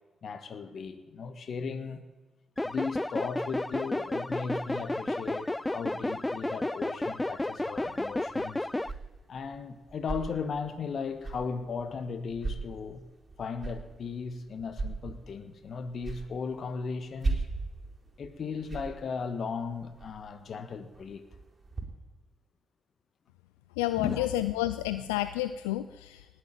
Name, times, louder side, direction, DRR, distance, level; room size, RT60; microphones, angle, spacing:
voice 1, 0.2-2.0 2.6-8.7 9.3-13.0 13.4-17.4 18.2-21.3 24.0-24.3, left 5 dB, 55° left, 1.5 m, -36 dB
sound 1, 2.6-8.9, left 1 dB, 15° left, 0.5 m, -32 dB
sound 2, 7.8-21.8, right 3 dB, 35° right, 4.3 m, -40 dB
voice 2, 23.8-26.2, left 14 dB, 90° left, 0.4 m, -30 dB
19.0 x 8.1 x 9.0 m
hypercardioid pair, 45°, 0 cm